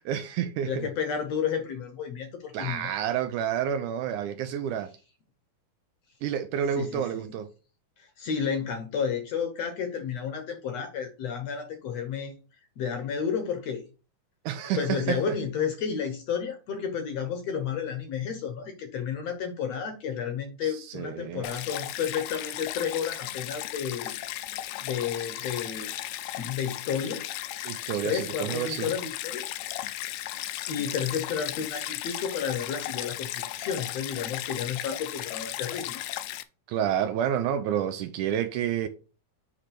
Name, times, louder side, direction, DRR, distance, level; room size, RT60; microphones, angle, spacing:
voice 1, 0.1-0.9 2.5-4.9 6.2-7.5 14.5-15.4 20.6-21.5 27.7-28.9 36.7-38.9, right 9 dB, 80° right, 1.9 m, -29 dB
voice 2, 0.7-2.9 6.8-7.4 8.0-12.3 12.8-13.8 14.8-24.1 24.8-25.9 26.4-27.3 28.0-29.5 30.7-36.1, left 7 dB, 65° left, 1.8 m, -31 dB
Stream, 21.4-36.4, left 14 dB, 80° left, 2.2 m, -36 dB
8.5 x 3.3 x 5.9 m
omnidirectional pair, 3.9 m